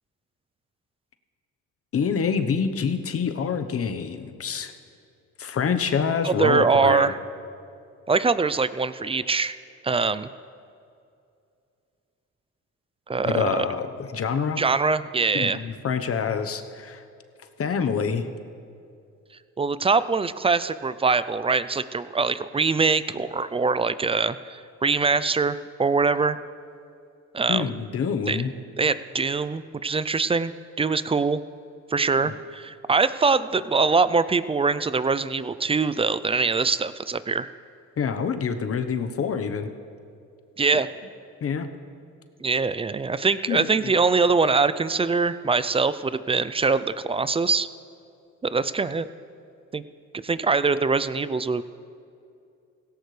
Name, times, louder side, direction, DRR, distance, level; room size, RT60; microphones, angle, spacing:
voice 1, 1.9-4.7 5.4-7.1 13.2-14.6 15.3-17.0 17.6-18.3 27.5-28.5 32.2-32.3 38.0-39.7 41.4-41.7 43.5-43.9, left 6 dB, 50° left, 8 dB, 1.1 m, -26 dB
voice 2, 6.2-7.2 8.1-9.5 9.8-10.3 13.1-13.7 14.6-15.6 19.6-26.4 27.3-27.7 28.3-28.4 28.8-30.5 30.8-31.4 31.9-37.5 40.6-40.9 42.4-47.7 48.5-49.1 49.7-49.8 50.2-51.6, right 4 dB, 20° right, 14 dB, 0.4 m, -23 dB
17.0 x 17.0 x 3.3 m, 2.5 s
cardioid pair, 90°, 30 cm